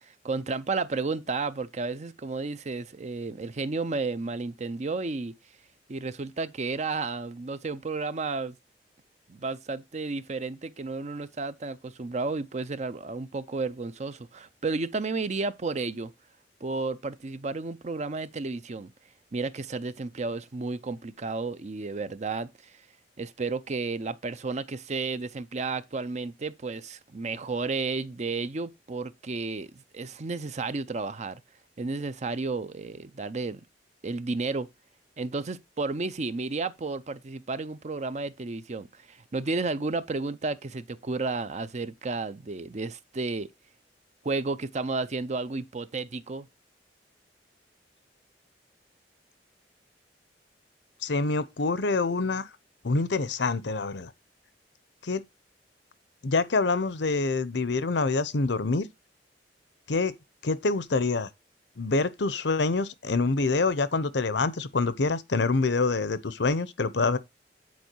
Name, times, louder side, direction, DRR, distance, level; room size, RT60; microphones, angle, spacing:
voice 1, 0.0-5.3 5.9-8.6 9.3-16.1 16.6-18.9 19.3-22.8 23.2-31.4 31.8-33.6 34.0-34.7 35.2-43.5 44.2-46.5, right 3 dB, 40° right, 0.6 m, -32 dB
voice 2, 51.0-52.5 52.8-54.1 55.0-55.2 56.2-58.9 59.9-60.1 60.4-61.3 61.8-67.2, left 3 dB, 80° left, 0.8 m, -26 dB
9.6 x 4.6 x 4.5 m
head